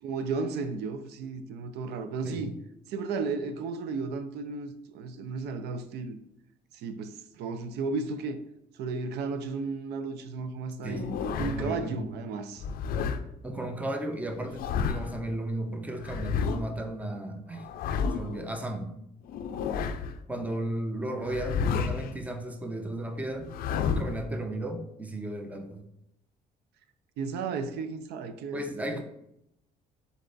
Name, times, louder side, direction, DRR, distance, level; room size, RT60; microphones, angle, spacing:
voice 1, 0.0-2.5 2.9-6.2 6.7-8.4 8.7-12.7 27.2-29.0, right 4 dB, 80° right, 0.4 m, -34 dB
sound 1, 10.8-11.8 12.6-13.2 14.3-15.2 16.0-16.6 17.5-18.4 19.3-20.2 21.2-22.1 23.4-24.3, left 6 dB, 60° left, 0.4 m, -31 dB
voice 2, 10.8-12.1 13.4-17.7 18.1-18.9 20.3-23.5 23.9-25.8 28.5-29.0, right 1 dB, 10° right, 0.6 m, -34 dB
4.1 x 3.3 x 3.9 m
cardioid pair, 110°, 17 cm